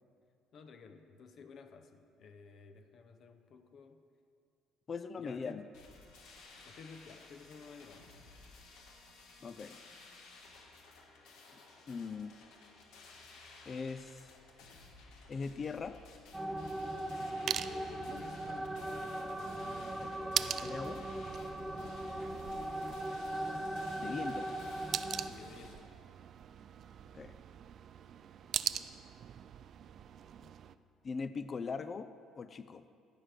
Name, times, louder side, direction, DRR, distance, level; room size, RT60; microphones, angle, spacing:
voice 1, 0.5-4.0 5.2-5.7 6.6-8.1 17.6-19.0 19.3-19.8 21.7-22.0 25.2-26.0 30.4-30.5, left 5 dB, 55° left, 8 dB, 0.7 m, -54 dB
voice 2, 4.9-5.6 9.4-9.8 11.9-12.4 13.7-14.3 15.3-16.0 20.0-20.1 20.6-21.0 24.0-24.5 27.1-27.3 31.0-32.1 32.4-32.8, left 5 dB, 35° left, 12 dB, 0.3 m, -40 dB
sound 1, 5.7-25.7, left 3 dB, 80° left, 1.3 m, -56 dB
sound 2, 16.3-25.3, right 1 dB, 5° right, 0.7 m, -39 dB
sound 3, 16.5-30.8, right 9 dB, 55° right, 0.3 m, -43 dB
14.0 x 5.0 x 6.0 m, 2.3 s
cardioid pair, 95°, 0 cm